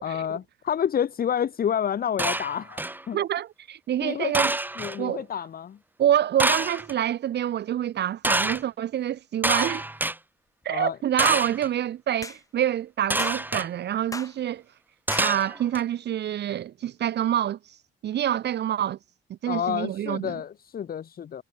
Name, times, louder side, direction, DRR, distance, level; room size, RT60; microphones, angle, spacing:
voice 1, 0.0-2.8 3.1-3.2 4.0-4.3 4.8-5.8 10.7-11.0 19.5-21.4, left 8 dB, 50° left, 1.1 m, -29 dB
sound 1, 2.2-3.0 4.3-5.0 6.4-6.9 8.2-8.6 9.4-10.2 11.2-11.7 13.1-13.7 15.1-15.8, right 1 dB, 10° right, 1.4 m, -26 dB
voice 2, 3.1-4.5 5.0-5.2 6.0-9.8 10.6-14.6 15.2-17.8 18.0-19.0 19.4-20.3, right 11 dB, 60° right, 0.7 m, -26 dB
sound 2, 11.2-11.4 12.2-12.4 13.2-13.4 14.1-14.3 15.1-15.3, left 3 dB, 15° left, 1.1 m, -36 dB
cardioid pair, 90°, 20 cm